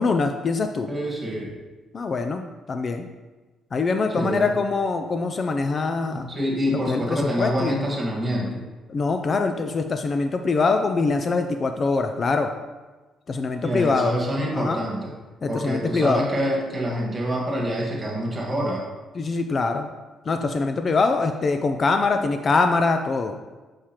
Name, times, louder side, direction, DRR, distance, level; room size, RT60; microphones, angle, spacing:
voice 1, 0.0-0.9 1.9-3.1 3.7-6.3 6.7-7.7 8.9-12.5 13.3-14.2 14.5-14.8 15.4-16.2 19.2-19.9 20.3-23.4, left 4 dB, 35° left, 6 dB, 0.3 m, -23 dB
voice 2, 0.9-1.5 4.1-4.5 6.1-8.6 13.6-15.1 15.5-18.8, equal, 25° right, -2 dB, 1.5 m, -26 dB
7.3 x 4.8 x 2.9 m, 1.2 s
cardioid pair, 130°, 0 cm